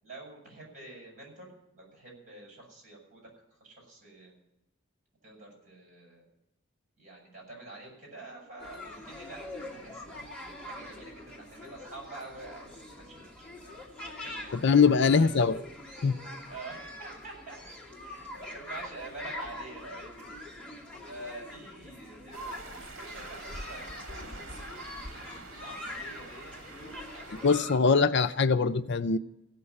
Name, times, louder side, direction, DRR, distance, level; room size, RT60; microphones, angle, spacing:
voice 1, 0.0-4.3 5.2-6.2 7.0-10.3 10.6-13.2 13.6-15.3 16.5-17.6 18.0-20.4 21.1-24.7 25.1-28.0, right 2 dB, 40° right, -1 dB, 7.8 m, -47 dB
sound 1, 8.6-27.8, left 1 dB, 5° left, 2.4 m, -44 dB
voice 2, 14.6-15.5 16.0-16.2 27.4-29.2, left 5 dB, 55° left, 13 dB, 0.5 m, -22 dB
sound 2, 22.3-27.6, right 2 dB, 65° right, 1.9 m, -45 dB
16.0 x 6.8 x 9.8 m, 0.88 s
head